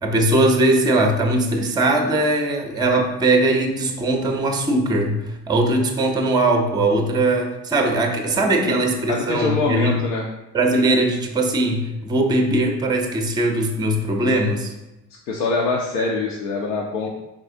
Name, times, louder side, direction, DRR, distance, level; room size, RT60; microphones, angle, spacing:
voice 1, 0.0-10.0 10.5-14.7, right 2 dB, 10° right, 3 dB, 0.6 m, -20 dB
voice 2, 9.1-10.2 15.3-17.1, left 3 dB, 70° left, -1 dB, 0.7 m, -23 dB
4.7 x 3.7 x 2.6 m, 0.95 s
figure-of-eight pair, 60°, 49 cm